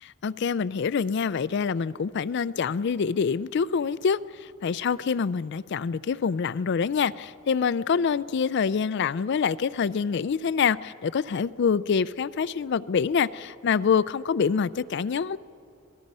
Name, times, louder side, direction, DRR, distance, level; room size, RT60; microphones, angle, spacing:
voice 1, 0.2-15.4, left 6 dB, 55° left, 18 dB, 0.4 m, -26 dB
26.0 x 18.5 x 5.5 m, 2.6 s
head